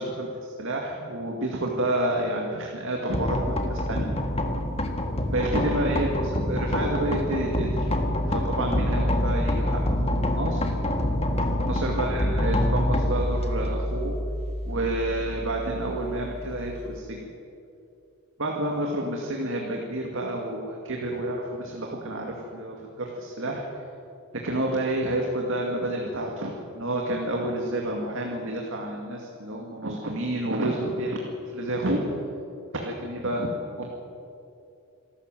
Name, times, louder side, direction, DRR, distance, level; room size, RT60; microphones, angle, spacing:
voice 1, 0.0-4.1 5.3-6.1 6.5-7.9 8.3-10.7 11.7-14.2 14.7-17.3 18.4-23.6 24.4-31.2 31.5-32.0 32.7-33.5 33.8-33.9, right 1 dB, 60° right, 0 dB, 2.3 m, -29 dB
sound 1, 3.1-17.0, left 1 dB, 30° left, 1.7 m, -27 dB
26.5 x 13.0 x 7.8 m, 2.6 s
head